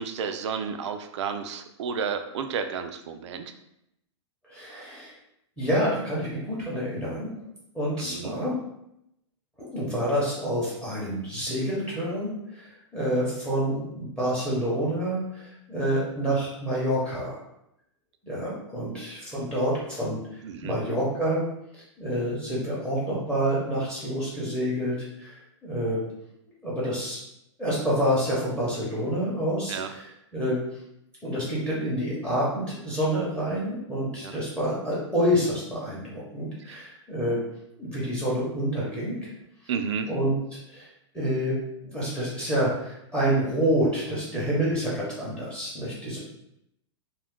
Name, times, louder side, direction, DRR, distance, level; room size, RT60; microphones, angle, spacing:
voice 1, 0.0-3.5 8.0-8.4 20.4-20.7 29.7-29.9 34.2-34.4 36.7-36.8 39.7-40.1, right 6 dB, 70° right, 7 dB, 0.4 m, -32 dB
voice 2, 4.5-5.1 5.6-7.3 7.7-8.6 9.6-17.4 18.2-20.2 20.6-21.4 21.7-26.0 26.6-27.2 27.6-30.6 31.2-37.4 37.8-39.3 40.1-40.9 41.1-41.5 41.9-46.2, equal, 5° left, -6 dB, 0.7 m, -28 dB
2.4 x 2.1 x 3.5 m, 0.81 s
hypercardioid pair, 140°, 15 cm